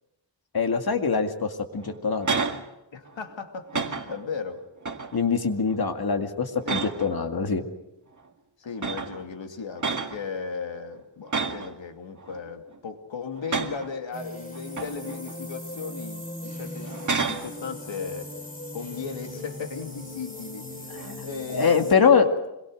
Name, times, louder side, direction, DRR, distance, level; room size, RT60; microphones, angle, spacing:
voice 1, 0.5-2.4 5.1-7.7 21.0-22.5, left 5 dB, 55° left, 5 dB, 2.2 m, -24 dB
sound 1, 1.8-2.7 3.1-3.3 3.7-4.3 4.8-5.3 5.7-6.0 6.6-7.2 8.2-8.3 8.8-9.2 9.8-10.2 11.3-11.7 12.2-12.8 13.4-13.9 14.5-15.4 15.8-16.0 16.8-17.5 21.0-21.3, right 4 dB, 45° right, 1.9 m, -31 dB
voice 2, 2.9-4.6 6.6-6.8 8.6-18.4 18.7-22.1, left 5 dB, 90° left, 5 dB, 2.7 m, -37 dB
sound 2, 14.1-21.9, left 1 dB, 20° left, 3.1 m, -39 dB
25.5 x 22.5 x 6.5 m, 0.91 s
wide cardioid pair, 130°, 44 cm